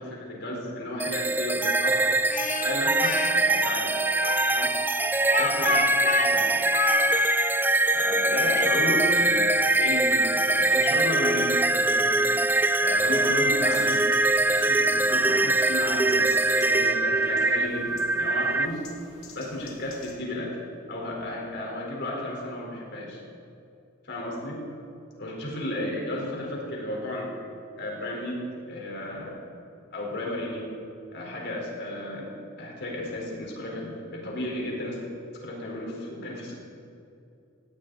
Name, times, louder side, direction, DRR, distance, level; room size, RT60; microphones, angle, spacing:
voice 1, 0.0-2.0 2.5-4.0 4.4-4.7 5.3-6.5 7.9-12.3 12.8-14.1 14.4-18.8 19.3-20.5 20.9-23.2 24.0-24.6 25.2-27.3 27.8-29.4 29.9-30.7 31.1-32.3 32.6-35.0 35.3-36.5, left 1 dB, 55° left, -2 dB, 4.4 m, -33 dB
sound 1, 1.0-18.7, right 2 dB, 10° right, 0.4 m, -23 dB
Speech, 2.3-3.3 4.2-7.2, left 5 dB, 40° left, 0.8 m, -30 dB
sound 2, 12.9-20.2, left 5 dB, 85° left, 2.3 m, -50 dB
18.5 x 16.0 x 4.1 m, 2.6 s
head